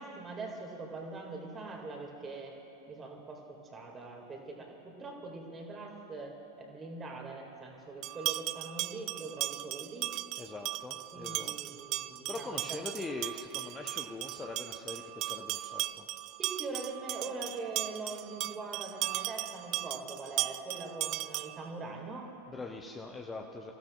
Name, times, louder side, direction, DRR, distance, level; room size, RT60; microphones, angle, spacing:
voice 1, 0.0-2.6 2.9-10.1 11.1-13.1 16.4-22.3, right 3 dB, 20° right, 1 dB, 2.2 m, -43 dB
sound 1, 8.0-21.7, right 17 dB, 40° right, 0.3 m, -37 dB
voice 2, 10.4-11.5 12.3-16.1 22.5-23.7, left 3 dB, 15° left, 2 dB, 0.8 m, -42 dB
28.5 x 15.5 x 2.4 m, 3.0 s
figure-of-eight pair, 90°, 0 cm